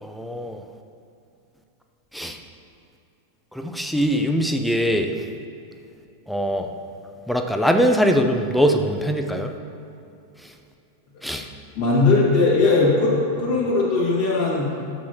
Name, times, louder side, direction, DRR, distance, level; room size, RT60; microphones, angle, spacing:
voice 1, 0.0-0.6 2.1-2.4 3.5-5.1 6.3-6.7 7.3-9.5 11.2-11.5, equal, ahead, 4 dB, 0.6 m, -22 dB
voice 2, 11.7-14.7, left 3 dB, 50° left, -6 dB, 2.1 m, -19 dB
12.0 x 7.7 x 2.9 m, 2.8 s
figure-of-eight pair, 90°, 0 cm